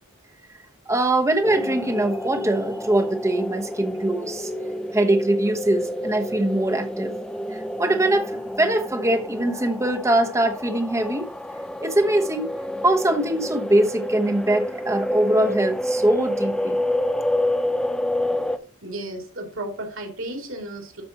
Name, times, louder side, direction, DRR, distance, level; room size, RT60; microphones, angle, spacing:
voice 1, 0.9-4.5 4.9-7.1 7.5-11.3 11.8-12.5 12.8-16.8, right 1 dB, 15° right, 1.1 m, -22 dB
sound 1, 1.4-18.6, left 1 dB, 5° left, 0.5 m, -29 dB
voice 2, 18.8-21.0, right 1 dB, 65° right, 2.8 m, -33 dB
13.5 x 5.2 x 3.0 m
head